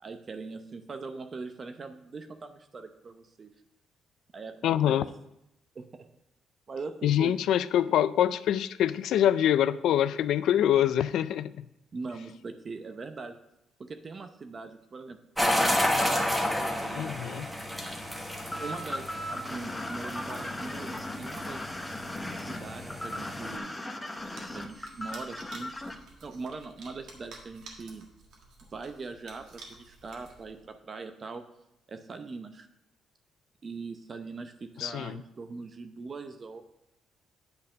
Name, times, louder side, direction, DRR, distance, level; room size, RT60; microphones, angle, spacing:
voice 1, 0.0-3.5 4.3-5.0 5.7-6.1 6.7-7.4 11.9-13.3 13.8-16.3 16.6-17.1 18.6-21.6 22.5-23.8 24.5-28.1 28.7-31.4 31.9-32.7 33.6-36.6, right 4 dB, 40° right, 7 dB, 0.7 m, -41 dB
voice 2, 4.6-5.1 7.0-11.7 17.0-17.5 34.8-35.2, left 11 dB, 80° left, 15 dB, 0.3 m, -25 dB
sound 1, 15.4-23.6, left 1 dB, 5° right, 1.2 m, -31 dB
sound 2, 18.5-26.0, left 1 dB, 15° left, 1.0 m, -37 dB
sound 3, 24.1-30.7, right 3 dB, 80° right, 1.6 m, -51 dB
8.8 x 4.1 x 6.5 m, 0.85 s
cardioid pair, 90°, 0 cm